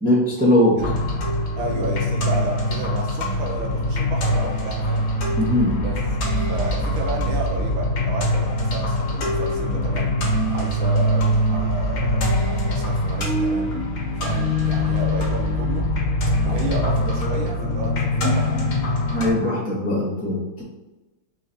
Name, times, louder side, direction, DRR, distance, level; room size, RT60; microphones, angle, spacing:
voice 1, 0.0-0.8 5.4-5.7 19.1-20.6, left 1 dB, 10° right, -7 dB, 0.6 m, -20 dB
sound 1, 0.8-19.3, left 1 dB, 70° left, 1.6 m, -23 dB
voice 2, 1.6-5.1 5.8-6.0 6.5-12.3 12.7-13.7 14.2-15.9 16.4-18.5 19.2-19.4, right 3 dB, 80° right, 0 dB, 1.7 m, -31 dB
4.6 x 3.3 x 2.8 m, 1.1 s
omnidirectional pair, 2.4 m